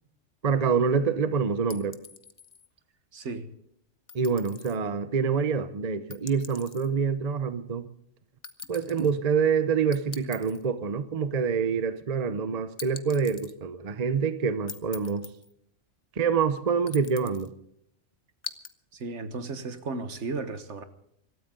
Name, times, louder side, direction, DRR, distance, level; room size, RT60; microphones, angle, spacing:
voice 1, 0.4-2.0 4.1-7.8 8.7-15.3 16.2-17.5, right 6 dB, 35° right, 0.8 m, -26 dB
sound 1, 1.7-2.7 4.1-4.8 6.1-6.9 8.4-9.1 9.9-10.7 12.8-13.5 14.7-15.5 16.9-17.5 18.4-18.7, left 5 dB, 30° left, 0.8 m, -43 dB
voice 2, 3.1-3.5 18.9-20.8, right 3 dB, 65° right, 1.6 m, -35 dB
25.5 x 13.5 x 3.8 m
omnidirectional pair, 1.3 m